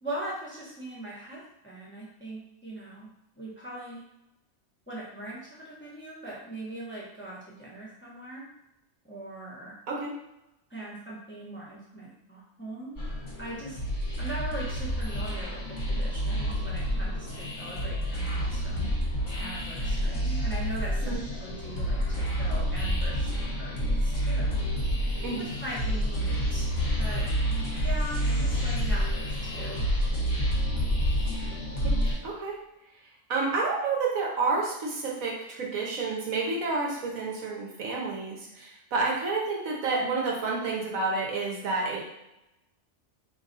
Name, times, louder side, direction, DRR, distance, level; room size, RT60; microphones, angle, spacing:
voice 1, 0.0-3.1 3.4-4.0 4.9-8.5 9.0-9.7 10.7-13.0 13.4-13.8 14.2-18.9 19.4-23.3 23.6-24.6 25.4-26.7 27.0-27.3 27.8-29.9, right 1 dB, 10° left, -6 dB, 0.9 m, -40 dB
sound 1, 13.0-32.1, equal, 35° left, 1.2 m, -29 dB
voice 2, 32.2-32.6 33.3-42.0, right 3 dB, 75° right, -2 dB, 1.4 m, -29 dB
4.0 x 2.9 x 4.0 m, 0.89 s
omnidirectional pair, 1.4 m